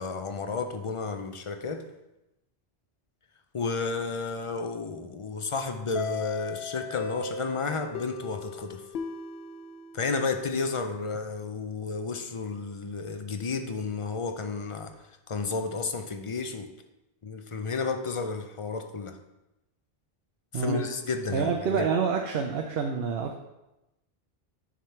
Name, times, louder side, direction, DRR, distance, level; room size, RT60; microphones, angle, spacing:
voice 1, 0.0-1.9 3.5-8.8 9.9-14.9 15.3-16.7 17.2-19.2 20.5-21.9, left 4 dB, 40° left, 0.5 m, -32 dB
sound 1, 6.0-10.6, left 5 dB, 75° left, 0.9 m, -37 dB
voice 2, 20.5-20.9 21.3-23.4, right 5 dB, 70° right, 0.9 m, -27 dB
7.5 x 3.7 x 5.6 m
omnidirectional pair, 1.0 m